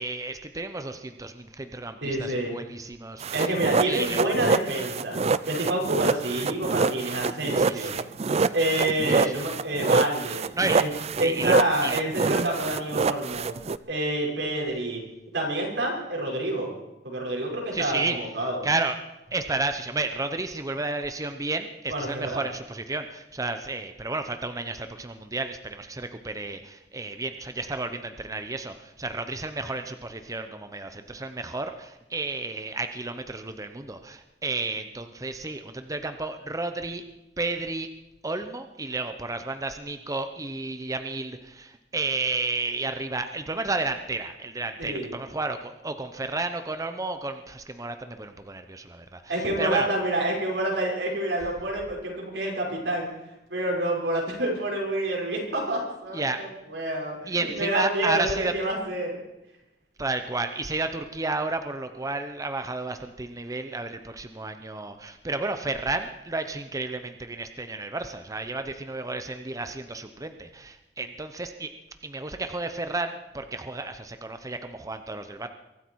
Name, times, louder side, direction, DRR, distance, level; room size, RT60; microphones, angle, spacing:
voice 1, 0.0-3.5 3.8-4.3 7.6-8.1 9.1-9.4 10.6-10.8 11.2-11.5 11.8-12.0 17.7-18.2 18.6-19.0 19.3-37.0 37.4-37.9 38.2-49.9 56.1-56.4 57.3-58.5 60.0-71.7 72.0-75.5, right 3 dB, 20° right, 8 dB, 0.8 m, -32 dB
voice 2, 2.0-2.5 3.3-5.2 5.5-8.0 8.5-10.5 10.7-10.9 11.2-13.5 13.9-15.0 15.3-16.7 17.0-18.7 21.9-22.4 44.8-45.1 49.3-53.1 53.5-59.2, right 1 dB, 90° right, -1 dB, 5.5 m, -28 dB
sound 1, 3.2-13.8, right 4 dB, 35° right, 0.5 m, -25 dB
23.5 x 13.0 x 4.7 m, 0.94 s
head